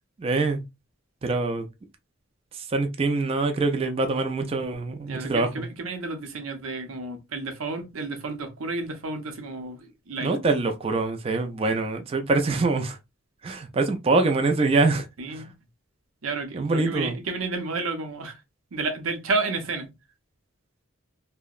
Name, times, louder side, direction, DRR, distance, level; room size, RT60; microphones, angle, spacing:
voice 1, 0.2-0.6 1.2-1.7 2.7-5.7 10.2-13.0 13.4-15.4 16.5-17.2, right 3 dB, 30° right, 0.3 m, -24 dB
voice 2, 5.0-9.8 10.1-10.3 15.2-15.5 16.2-18.4 18.7-19.9, right 3 dB, 80° right, 0.7 m, -31 dB
2.7 x 2.1 x 2.3 m
head